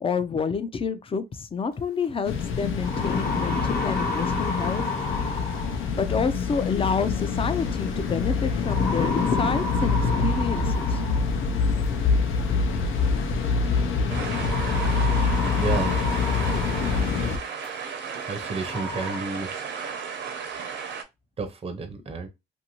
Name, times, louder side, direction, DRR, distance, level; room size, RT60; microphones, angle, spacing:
voice 1, 0.0-5.1 5.9-11.0, left 5 dB, 30° left, 0.4 m, -29 dB
sound 1, 2.0-2.1 2.6-6.0 7.4-7.8 8.6-11.4 12.7-12.8 14.3-17.2 17.6-17.7 18.3-18.4 18.6-19.2, left 2 dB, 50° left, 1.0 m, -30 dB
sound 2, 2.3-17.4, left 5 dB, 85° left, 0.7 m, -26 dB
sound 3, 14.1-21.0, right 6 dB, 65° right, 0.7 m, -35 dB
voice 2, 15.6-16.0 18.2-19.6 21.4-22.3, right 4 dB, 30° right, 0.6 m, -31 dB
2.6 x 2.6 x 2.8 m
cardioid pair, 90°, 20 cm